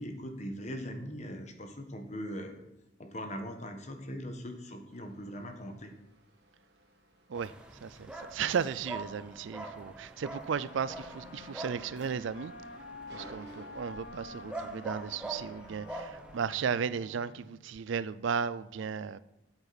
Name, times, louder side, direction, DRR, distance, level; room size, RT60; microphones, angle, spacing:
voice 1, 0.0-2.5 3.0-5.9, equal, 35° left, 1.2 m, -40 dB
sound 1, 4.9-9.9 11.1-12.4 12.7-14.4 15.1-15.6, right 1 dB, 55° right, 1.6 m, -57 dB
sound 2, 7.3-16.4, right 2 dB, 5° right, 0.8 m, -44 dB
voice 2, 7.8-12.5 13.1-19.2, right 6 dB, 70° right, 0.4 m, -35 dB
Wind instrument woodwind instrument, 10.2-17.7, left 2 dB, 70° left, 0.9 m, -50 dB
12.5 x 8.0 x 4.1 m
head